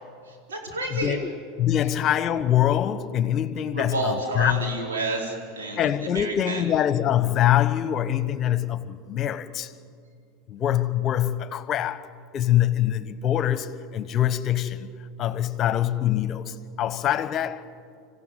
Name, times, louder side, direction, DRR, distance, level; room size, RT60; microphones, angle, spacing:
voice 1, 0.3-1.2 3.7-6.7, right 2 dB, 85° right, 4.5 m, -30 dB
voice 2, 0.9-1.3 1.6-4.7 5.8-9.7 10.5-14.9 15.2-17.7, left 11 dB, 40° left, 1.2 m, -24 dB
25.5 x 16.0 x 9.4 m
hypercardioid pair, 85°, 0 cm